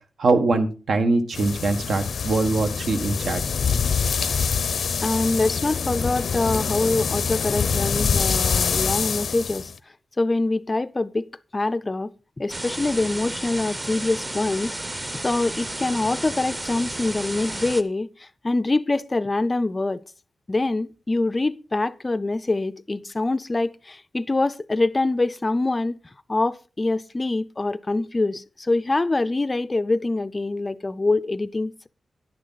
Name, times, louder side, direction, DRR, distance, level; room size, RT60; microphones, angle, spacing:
voice 1, 0.2-3.5, right 3 dB, 75° right, 1.5 m, -22 dB
sound 1, 1.3-9.7, left 6 dB, 75° left, 0.6 m, -25 dB
voice 2, 5.0-9.7 10.2-11.3 11.5-12.1 12.4-20.0 20.5-26.0 26.3-31.9, left 2 dB, 25° left, 0.4 m, -25 dB
sound 2, 12.5-17.8, right 1 dB, 20° right, 0.8 m, -32 dB
10.5 x 9.9 x 4.0 m
wide cardioid pair, 115°, 0 cm